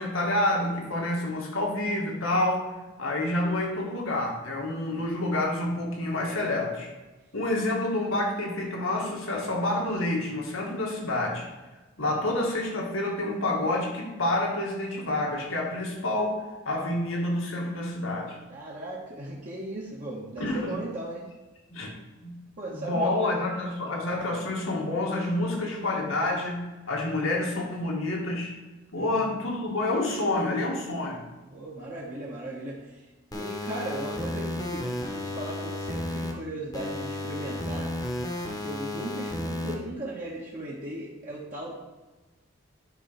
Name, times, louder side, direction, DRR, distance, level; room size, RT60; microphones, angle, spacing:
voice 1, 0.0-2.7 3.0-6.9 7.3-11.5 12.0-18.4 20.4-20.8 21.7-21.9 22.2-22.4 22.7-28.5 28.9-31.2, left 1 dB, 85° left, -1 dB, 1.9 m, -28 dB
voice 2, 18.5-21.2 22.6-23.4 29.0-29.2 31.5-33.0 33.3-34.8 35.1-37.9 38.6-41.7, right 1 dB, 40° right, -5 dB, 1.3 m, -37 dB
sound 1, 33.3-36.3 36.7-39.7, left 1 dB, 20° left, 1.0 m, -33 dB
10.5 x 3.9 x 4.6 m, 1.2 s
head